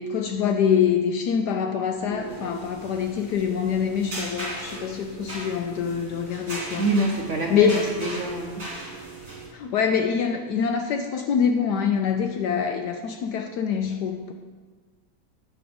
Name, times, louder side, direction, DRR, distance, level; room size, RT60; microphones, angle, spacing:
voice 1, 0.0-6.9 7.5-7.9 9.5-14.3, left 7 dB, 75° left, 5 dB, 1.0 m, -25 dB
sound 1, 2.0-9.5, right 2 dB, 40° right, 3.1 m, -37 dB
voice 2, 6.8-8.6, right 2 dB, 55° right, 0 dB, 0.8 m, -26 dB
8.7 x 6.2 x 5.1 m, 1.5 s
omnidirectional pair, 2.1 m